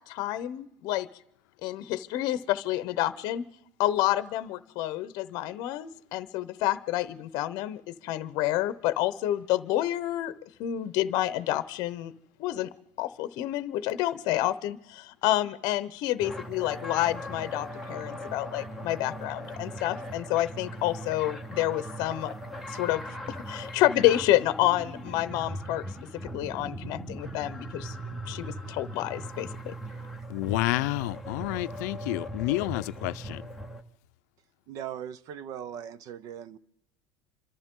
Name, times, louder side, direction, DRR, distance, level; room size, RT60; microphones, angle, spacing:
voice 1, 0.1-1.1 1.6-3.4 3.8-10.3 10.6-12.1 12.4-12.7 13.0-22.3 22.7-25.8 26.3-27.9 28.3-29.7, left 14 dB, 45° left, 0.8 m, -29 dB
sound 1, 16.2-33.8, equal, ahead, 0.9 m, -39 dB
voice 2, 30.3-33.4, left 18 dB, 85° left, 0.6 m, -29 dB
voice 3, 34.7-36.6, right 9 dB, 40° right, 0.7 m, -39 dB
27.0 x 13.5 x 3.8 m
cardioid pair, 175°, 9 cm